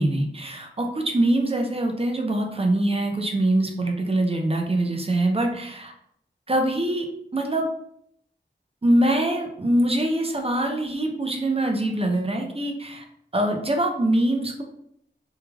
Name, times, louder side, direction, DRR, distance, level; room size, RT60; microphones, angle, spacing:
voice 1, 0.0-5.9 6.5-7.1 7.3-7.7 8.8-13.0 13.3-14.6, right 1 dB, 30° right, 3 dB, 0.5 m, -23 dB
3.1 x 2.3 x 2.3 m, 0.71 s
wide cardioid pair, 50°, 20 cm